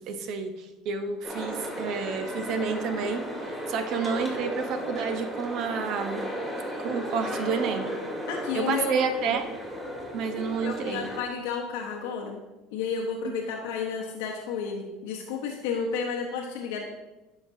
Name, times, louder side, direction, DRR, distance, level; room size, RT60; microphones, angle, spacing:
voice 1, 0.1-3.3 3.7-6.3 6.8-7.9 8.5-9.5 10.1-11.1, right 5 dB, 60° right, 8 dB, 0.7 m, -29 dB
sound 1, 1.2-11.2, equal, 10° right, 2.0 m, -35 dB
voice 2, 8.3-9.4 10.6-12.4 12.7-16.8, left 6 dB, 85° left, 0 dB, 0.8 m, -32 dB
9.6 x 5.7 x 2.7 m, 1.1 s
supercardioid pair, 105°, 0 cm